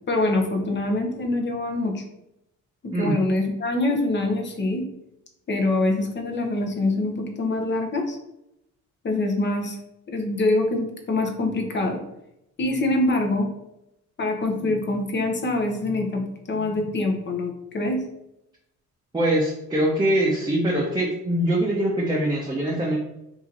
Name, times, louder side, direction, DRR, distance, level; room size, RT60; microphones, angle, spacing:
voice 1, 0.1-2.0 2.8-4.8 5.5-8.2 9.0-9.8 10.1-12.0 12.6-13.5 14.2-18.0, left 2 dB, 35° left, 3 dB, 0.8 m, -24 dB
voice 2, 2.9-3.3 19.1-23.0, right 1 dB, 15° right, -4 dB, 0.7 m, -23 dB
2.9 x 2.7 x 3.8 m, 0.85 s
cardioid pair, 90°, 30 cm